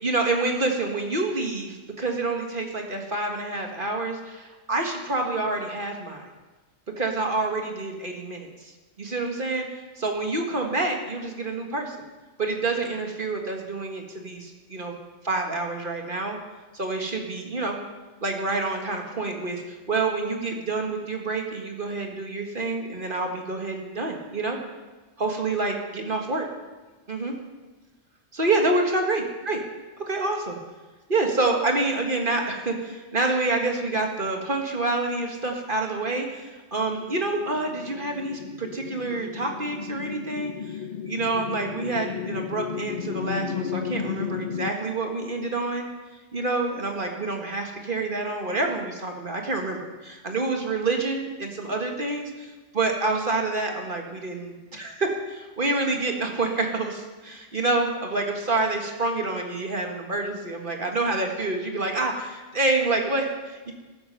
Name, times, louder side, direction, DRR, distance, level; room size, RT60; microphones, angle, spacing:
voice 1, 0.0-6.3 7.0-8.7 9.0-12.0 12.4-14.9 15.2-16.4 16.7-17.8 18.2-24.6 25.2-26.5 27.1-27.3 28.3-29.6 30.0-30.6 31.1-40.8 41.1-45.9 46.3-63.7, right 2 dB, 45° right, 2 dB, 1.9 m, -27 dB
sound 1, 36.9-44.7, left 7 dB, 55° left, 0.6 m, -34 dB
14.5 x 13.0 x 5.7 m, 1.2 s
omnidirectional pair, 1.2 m